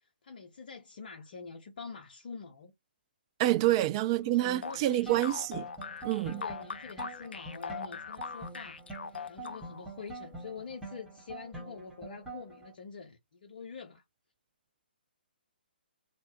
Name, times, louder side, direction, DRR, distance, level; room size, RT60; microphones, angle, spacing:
voice 1, 0.0-2.7 4.2-5.2 6.3-8.8 9.3-14.0, left 5 dB, 50° left, 0.8 m, -46 dB
voice 2, 3.4-5.7 6.0-6.4, right 15 dB, 30° right, 0.4 m, -27 dB
sound 1, 4.6-9.9, left 6 dB, 70° left, 0.4 m, -41 dB
sound 2, 5.1-12.7, right 3 dB, ahead, 1.3 m, -46 dB
3.2 x 2.4 x 2.9 m
figure-of-eight pair, 135°, 6 cm